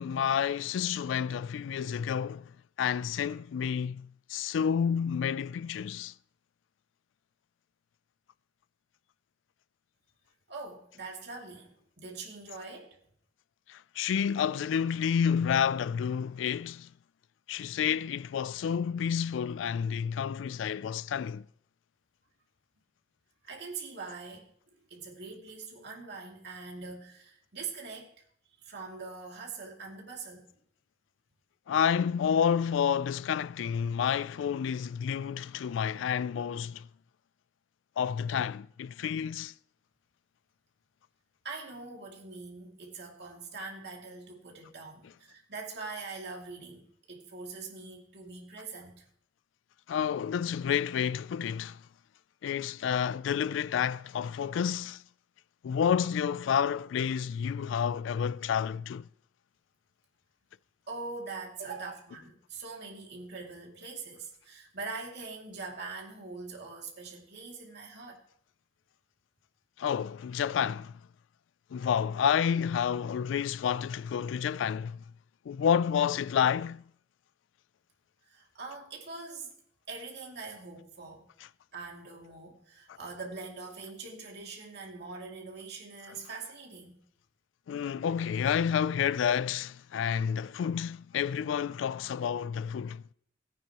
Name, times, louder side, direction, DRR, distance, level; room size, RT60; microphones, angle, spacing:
voice 1, 0.0-2.5 2.8-6.1 13.7-16.9 17.5-21.4 31.7-36.9 38.0-39.5 49.9-51.8 52.4-55.0 55.6-59.1 69.8-71.0 71.7-75.0 75.5-76.8 87.7-93.0, left 8 dB, 70° left, 0.3 m, -29 dB
voice 2, 10.5-13.0 23.4-28.1 28.6-30.5 41.4-49.1 60.9-68.2 78.3-79.5 79.9-81.3 81.7-87.0, right 4 dB, 60° right, 2.5 m, -43 dB
17.5 x 9.3 x 3.0 m
head